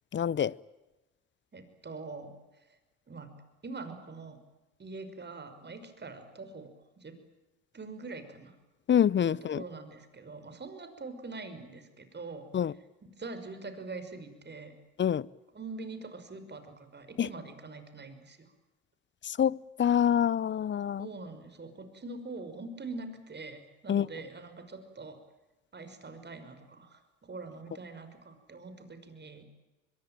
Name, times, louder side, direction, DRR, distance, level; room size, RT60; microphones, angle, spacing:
voice 1, 0.1-0.5 8.9-9.6 12.5-12.7 15.0-15.2 17.2-17.3 19.2-21.1 23.9-24.1, left 9 dB, 30° left, 0.8 m, -26 dB
voice 2, 1.5-2.6 3.1-3.4 3.6-4.4 4.8-7.2 7.7-8.5 9.3-12.5 13.0-14.8 15.5-18.5 21.0-25.2 25.7-29.5, right 3 dB, 30° right, 5.7 m, -44 dB
24.0 x 22.5 x 9.1 m
hypercardioid pair, 70°, 36 cm